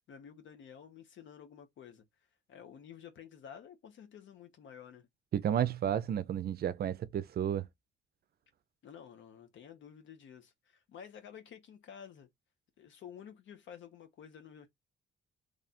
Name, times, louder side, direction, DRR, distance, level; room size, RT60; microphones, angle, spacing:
voice 1, 0.1-2.0 2.5-5.1 8.8-12.3 12.8-14.7, left 8 dB, 70° left, 1.0 m, -51 dB
voice 2, 5.3-7.7, right 9 dB, 55° right, 0.5 m, -32 dB
3.3 x 2.4 x 4.1 m
cardioid pair, 90°, 20 cm